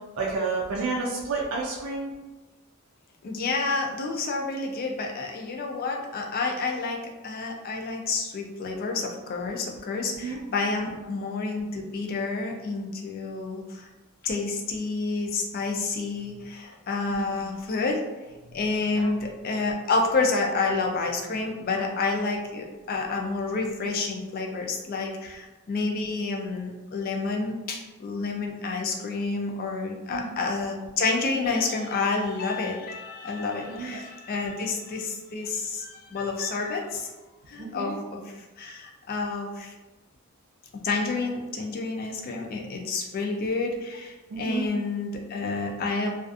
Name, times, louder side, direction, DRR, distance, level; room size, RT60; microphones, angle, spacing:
voice 1, 0.1-2.2 10.1-10.4 17.1-17.4 18.9-19.1 30.1-30.3 33.7-34.0 37.6-38.0 44.3-44.6, right 4 dB, 60° right, -3 dB, 0.4 m, -31 dB
voice 2, 3.2-13.9 14.2-18.0 18.5-37.1 37.5-39.7 40.8-46.1, left 3 dB, 40° left, 2 dB, 0.3 m, -29 dB
2.4 x 2.4 x 2.4 m, 1.1 s
head